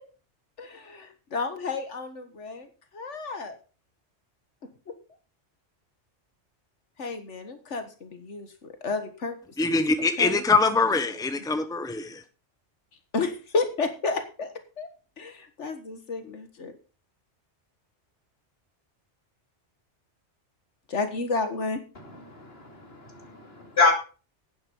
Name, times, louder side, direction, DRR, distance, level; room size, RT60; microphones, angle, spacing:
voice 1, 0.6-3.6 7.0-10.7 11.1-11.5 13.1-14.9 15.2-16.7 20.9-21.8, left 3 dB, 80° left, 8 dB, 1.8 m, -32 dB
voice 2, 9.6-12.2, left 3 dB, 5° left, 9 dB, 1.0 m, -23 dB
voice 3, 22.3-23.9, left 3 dB, 60° left, 3 dB, 3.0 m, -26 dB
11.0 x 9.4 x 5.3 m, 0.35 s
omnidirectional pair, 1.2 m